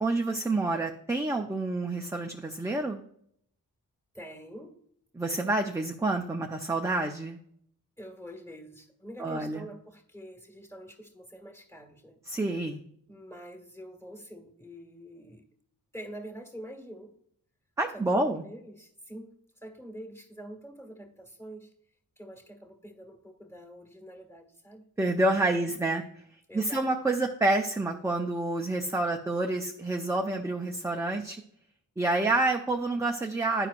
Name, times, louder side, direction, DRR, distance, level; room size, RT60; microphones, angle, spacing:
voice 1, 0.0-3.0 5.1-7.4 9.2-9.7 12.3-12.8 17.8-18.4 25.0-26.0 26.5-31.4 32.0-33.7, right 2 dB, 10° right, 3 dB, 0.5 m, -28 dB
voice 2, 4.1-4.7 8.0-12.2 13.1-15.5 15.9-17.1 17.9-19.3 19.6-21.7 22.2-24.9 25.4-25.9 26.5-26.9, equal, 5° left, 3 dB, 1.5 m, -46 dB
10.5 x 4.6 x 2.5 m, 0.68 s
cardioid pair, 65°, 36 cm